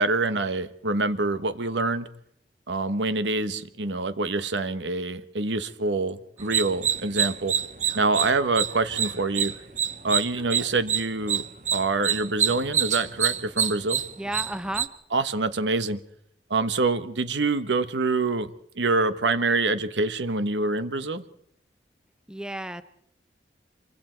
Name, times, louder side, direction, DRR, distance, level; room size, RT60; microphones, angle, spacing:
voice 1, 0.0-2.1 2.7-7.6 7.9-9.5 10.0-11.4 11.7-14.0 15.1-16.0 16.5-18.5 18.8-21.2, right 3 dB, 90° right, 12 dB, 1.2 m, -26 dB
sound 1, 6.4-7.3 7.8-11.5, right 1 dB, 25° right, 2.7 m, -52 dB
sound 2, 6.4-14.9, right 8 dB, 40° right, 0.9 m, -27 dB
voice 2, 14.2-14.9 22.3-22.8, right 1 dB, 5° right, 12 dB, 0.8 m, -32 dB
27.0 x 24.0 x 4.6 m, 0.70 s
head